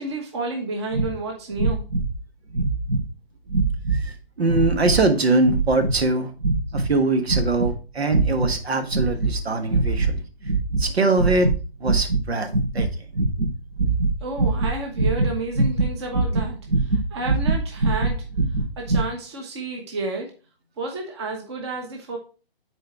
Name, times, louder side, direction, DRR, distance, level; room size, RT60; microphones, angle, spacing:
voice 1, 0.0-1.8 14.2-18.2 18.8-20.3 20.8-22.2, right 3 dB, 25° right, 1 dB, 1.1 m, -31 dB
sound 1, 0.9-1.1 1.5-2.2 2.5-3.1 3.5-4.0 4.5-5.0 5.4-6.0 6.4-6.9 7.3-7.7 8.1-8.6 8.9-9.3 9.7-10.1 10.4-10.9 11.1-11.6 11.8-19.0, right 3 dB, 55° right, 3.8 m, -22 dB
voice 2, 3.9-6.3 6.7-10.2 10.8-11.5 11.8-12.9, right 2 dB, 85° right, 7 dB, 1.5 m, -22 dB
6.6 x 4.3 x 4.5 m, 0.34 s
hypercardioid pair, 165°, 31 cm